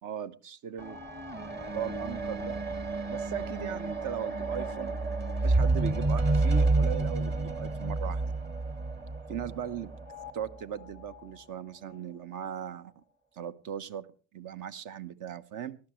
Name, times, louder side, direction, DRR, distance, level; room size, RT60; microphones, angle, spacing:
voice 1, 0.0-1.0 1.7-2.6 3.1-4.9 5.4-8.4 9.3-9.9 10.3-13.0 13.4-14.1 14.3-15.8, right 9 dB, 55° right, 13 dB, 1.0 m, -38 dB
sound 1, 0.8-10.3 11.1-11.2, right 2 dB, 30° right, 1.5 m, -30 dB
18.5 x 11.5 x 3.1 m, 0.36 s
hypercardioid pair, 65°, 36 cm